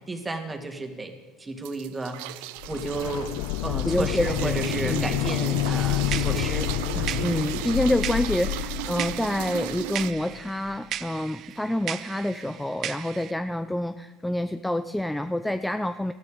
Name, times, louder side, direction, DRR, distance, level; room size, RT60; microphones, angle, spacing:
voice 1, 0.1-1.1 1.4-3.3 3.6-6.7 6.9-7.2, right 2 dB, 15° right, 5 dB, 2.7 m, -32 dB
sound 1, 1.6-10.1, right 16 dB, 80° right, 0.6 m, -35 dB
sound 2, 2.6-10.4 10.7-10.8, left 16 dB, 75° left, 0.5 m, -29 dB
voice 2, 3.8-4.6 4.9-5.1 7.2-16.1, left 1 dB, 5° left, 11 dB, 0.6 m, -27 dB
sound 3, 5.6-13.3, right 11 dB, 50° right, 0.8 m, -37 dB
20.0 x 13.5 x 5.2 m, 1.4 s
supercardioid pair, 105°, 0 cm